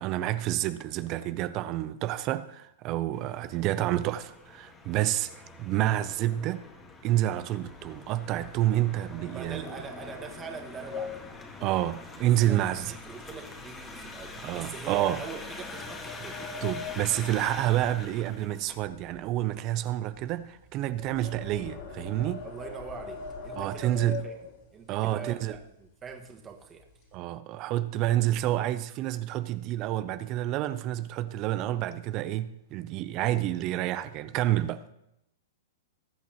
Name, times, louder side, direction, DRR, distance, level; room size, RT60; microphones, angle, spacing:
voice 1, 0.0-6.6 7.0-9.6 11.6-12.9 14.4-15.2 16.6-22.4 23.5-24.2 24.9-25.6 27.1-34.8, right 13 dB, 40° right, 0.5 m, -29 dB
sound 1, 3.1-18.7, left 3 dB, 20° left, 1.6 m, -45 dB
sound 2, 7.6-13.0 13.3-13.6 14.1-14.2 15.0-18.4 18.6-24.9 25.5-25.6 25.9-26.1 26.5-27.1, left 6 dB, 50° left, 3.8 m, -43 dB
voice 2, 9.3-11.2 12.4-16.4 22.4-26.9, right 6 dB, 20° right, 1.6 m, -43 dB
20.0 x 8.3 x 3.0 m
hypercardioid pair, 125°, 0 cm